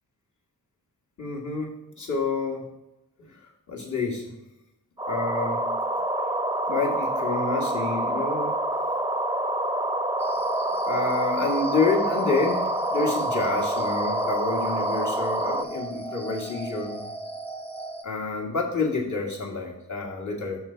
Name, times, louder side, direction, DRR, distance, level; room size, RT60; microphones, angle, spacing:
voice 1, 1.2-1.7 2.0-2.6 3.7-4.3 5.1-5.6 6.7-8.5 10.9-12.6 12.9-17.1 18.0-20.6, left 3 dB, 55° left, -1 dB, 2.0 m, -28 dB
sound 1, 5.0-15.6, right 1 dB, 10° right, 0.3 m, -27 dB
sound 2, 10.2-18.0, right 2 dB, 15° left, 0.9 m, -36 dB
6.4 x 6.2 x 4.5 m, 0.90 s
wide cardioid pair, 120°, 36 cm